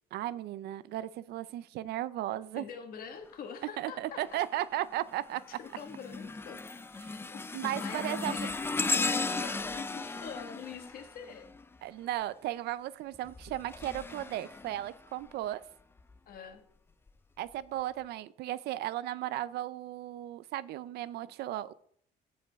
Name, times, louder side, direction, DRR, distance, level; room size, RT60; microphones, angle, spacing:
voice 1, 0.1-2.6 3.8-5.4 7.0-7.2 7.5-8.4 11.8-15.6 17.4-21.7, right 14 dB, 75° right, 17 dB, 0.6 m, -35 dB
voice 2, 2.6-4.4 5.6-6.6 7.0-7.4 7.8-11.5 16.3-16.6, left 6 dB, 60° left, 5 dB, 1.7 m, -45 dB
sound 1, 4.2-4.6 5.1-11.9 13.1-15.4 16.0-16.2 17.1-17.2, left 3 dB, 15° left, 0.4 m, -36 dB
15.0 x 5.3 x 3.6 m, 0.65 s
cardioid pair, 110°, 17 cm